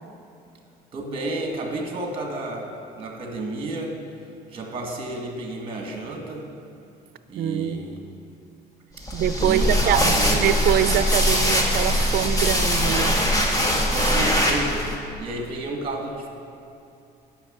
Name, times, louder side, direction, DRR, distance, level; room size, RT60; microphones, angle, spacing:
voice 1, 0.9-2.7 3.0-4.0 4.5-6.5 7.3-8.0 9.4-10.5 13.9-14.9 15.2-16.3, right 2 dB, 35° right, 1 dB, 1.9 m, -31 dB
voice 2, 7.4-7.8 9.1-10.1 10.4-13.2, right 11 dB, 65° right, 14 dB, 0.5 m, -24 dB
sound 1, 9.0-14.9, equal, 20° left, 1.8 m, -21 dB
9.8 x 6.2 x 8.0 m, 2.6 s
cardioid pair, 110°, 17 cm